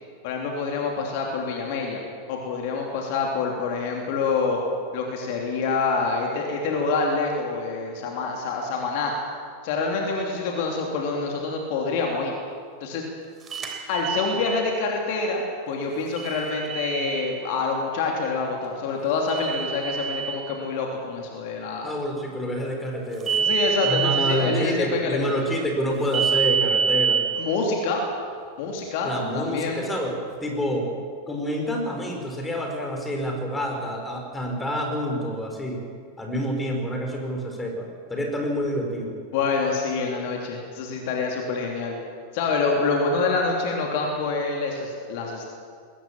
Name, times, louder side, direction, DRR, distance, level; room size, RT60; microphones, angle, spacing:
voice 1, 0.2-2.0 2.3-4.6 4.9-9.1 9.6-12.3 12.8-13.0 13.9-21.9 23.4-25.3 27.4-28.0 28.6-29.8 39.3-41.9 42.3-45.5, left 4 dB, 50° left, 0 dB, 3.0 m, -26 dB
sound 1, 13.5-14.6 16.2-17.3 19.3-20.3 23.2-24.3 26.1-27.2, right 7 dB, 25° right, 3.4 m, -25 dB
voice 2, 21.8-23.5 23.8-27.2 29.0-30.1 30.4-30.9 31.3-35.8 36.2-39.1, equal, 10° left, 2 dB, 4.7 m, -28 dB
21.0 x 18.5 x 7.4 m, 2.1 s
figure-of-eight pair, 90°, 0 cm